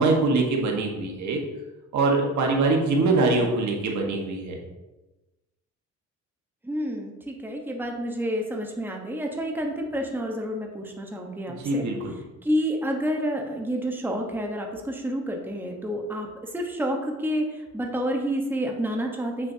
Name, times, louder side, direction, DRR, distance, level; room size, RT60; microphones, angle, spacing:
voice 1, 0.0-1.4 1.9-4.6 11.5-12.1, right 3 dB, 70° right, 1 dB, 1.5 m, -23 dB
voice 2, 6.6-11.8 12.4-16.3 16.5-19.5, equal, 5° right, 1 dB, 1.0 m, -29 dB
7.4 x 6.3 x 2.8 m, 1.1 s
cardioid pair, 90°, 30 cm